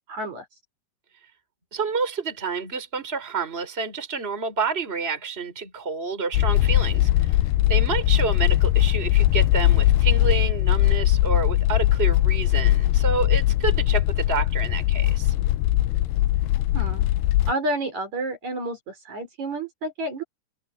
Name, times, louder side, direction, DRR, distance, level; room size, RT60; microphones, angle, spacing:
voice 1, 0.1-0.5 16.7-17.1 17.5-20.2, right 1 dB, 45° right, 5.6 m, -30 dB
voice 2, 1.7-7.4 7.7-15.3, right 5 dB, 15° right, 4.6 m, -29 dB
sound 1, 6.3-17.5, left 15 dB, 85° left, 2.4 m, -20 dB
omnidirectional pair, 4.9 m